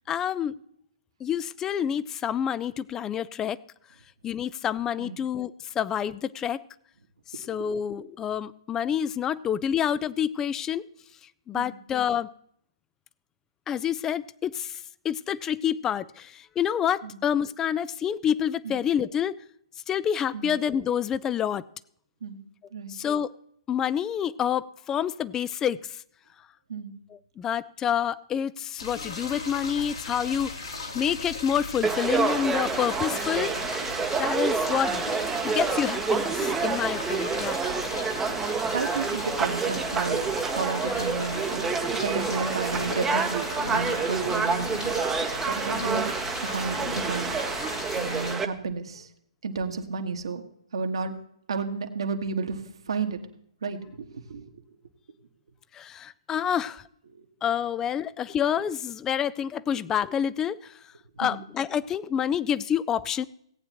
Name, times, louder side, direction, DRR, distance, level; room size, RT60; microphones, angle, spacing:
voice 1, 0.1-0.5 1.2-3.6 4.2-6.6 7.3-10.9 11.5-12.3 13.7-14.8 15.0-19.4 19.9-21.6 22.9-23.3 23.7-25.8 27.1-30.5 30.9-33.6 34.2-35.0 35.4-37.6 55.7-56.8 57.4-60.7 61.2-63.2, left 9 dB, 15° left, 18 dB, 0.4 m, -28 dB
sound 1, 28.8-48.4, left 3 dB, 75° left, 2.6 m, -36 dB
Conversation / Crowd, 31.8-48.4, right 5 dB, 10° right, 0.8 m, -28 dB
voice 2, 38.7-46.0 46.4-47.3 48.0-49.1 49.4-50.4 50.7-51.1 51.5-53.2 53.6-54.4 57.1-57.3 61.2-61.4, right 5 dB, 65° right, 5 dB, 1.5 m, -32 dB
17.5 x 8.9 x 2.9 m, 0.70 s
figure-of-eight pair, 130°, 3 cm